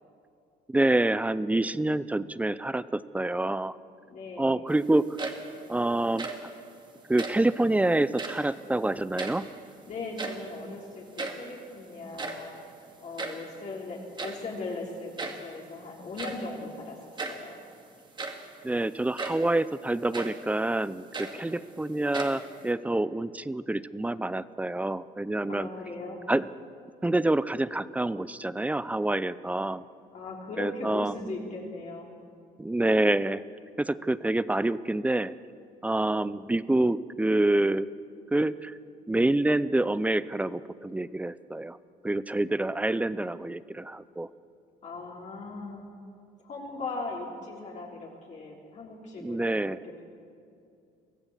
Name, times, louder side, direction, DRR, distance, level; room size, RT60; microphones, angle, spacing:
voice 1, 0.7-3.8 4.4-5.1 5.7-6.3 7.1-9.5 18.6-25.7 26.3-26.5 27.0-29.8 30.6-31.1 32.6-33.4 33.8-35.3 35.8-37.9 38.3-38.8 39.1-41.8 42.0-44.3 49.2-49.8, right 2 dB, 10° right, 17 dB, 0.5 m, -27 dB
voice 2, 4.1-4.7 9.8-12.5 13.0-17.0 17.3-17.5 25.4-26.2 30.0-32.1 44.8-45.9 46.4-50.0, left 3 dB, 45° left, -2 dB, 3.7 m, -39 dB
sound 1, 5.0-5.7 6.0-6.5 7.1-7.5 8.1-8.5 8.9-9.7 10.0-10.6 10.9-11.0 11.2-11.5 12.0-13.5 14.2-14.5 15.2-15.5 16.2-16.5 17.2-17.5 18.0-18.5 19.2-19.5 20.1-20.4 20.9-21.7 22.1-22.7, right 3 dB, 25° right, 2.2 m, -37 dB
23.5 x 15.5 x 7.4 m, 2.5 s
cardioid pair, 110°, 17 cm